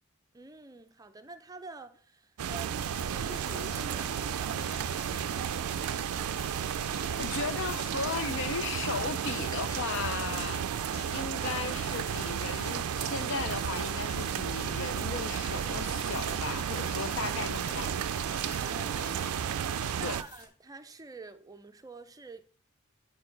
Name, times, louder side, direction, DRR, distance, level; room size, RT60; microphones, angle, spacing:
voice 1, 0.3-4.9 18.6-22.4, right 3 dB, 15° right, 0.5 m, -47 dB
sound 1, 2.4-20.2, right 8 dB, 85° right, 0.4 m, -33 dB
sound 2, 2.8-20.5, left 2 dB, 85° left, 2.1 m, -47 dB
voice 2, 6.7-10.7 11.1-17.9 20.0-20.2, left 5 dB, 60° left, 0.5 m, -36 dB
8.7 x 4.7 x 3.9 m
head